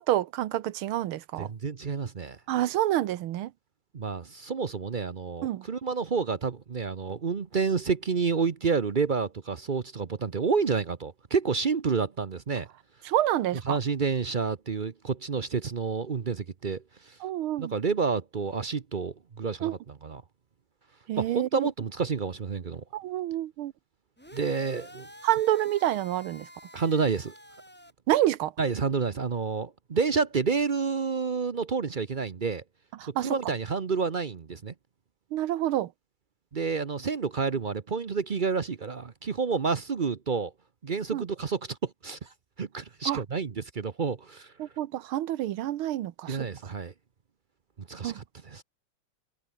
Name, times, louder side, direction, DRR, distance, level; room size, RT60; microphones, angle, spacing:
voice 1, 0.0-1.5 2.5-3.5 5.4-5.7 13.1-13.8 17.2-17.8 19.6-19.7 21.1-21.7 22.9-23.7 25.2-26.5 28.1-28.5 33.0-33.4 35.3-35.9 41.1-41.3 43.1-43.2 44.6-46.5 48.0-48.1, right 13 dB, 90° right, 1.8 m, -28 dB
voice 2, 1.4-2.4 3.9-12.7 13.7-17.2 17.6-20.2 21.2-22.8 24.3-25.1 26.7-27.3 28.6-32.6 33.1-34.7 36.5-40.5 40.8-42.3 42.6-44.5 46.3-46.9 47.9-48.6, right 5 dB, 55° right, 0.5 m, -29 dB
sound 1, 24.2-27.9, equal, 5° left, 3.7 m, -49 dB
omnidirectional pair, 2.3 m